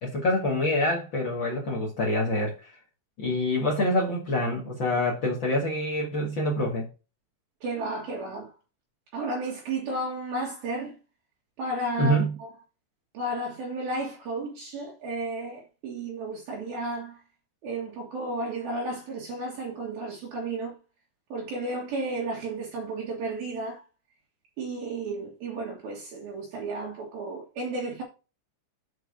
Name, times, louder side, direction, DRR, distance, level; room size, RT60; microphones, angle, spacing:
voice 1, 0.0-2.7 3.2-6.8 12.0-12.3, left 1 dB, 90° left, 1.0 m, -26 dB
voice 2, 7.6-8.5 9.1-11.0 11.6-12.5 13.1-17.2 17.6-20.8 21.3-23.8 24.6-28.0, right 2 dB, 65° right, 3.0 m, -33 dB
7.6 x 5.1 x 5.8 m
omnidirectional pair, 5.2 m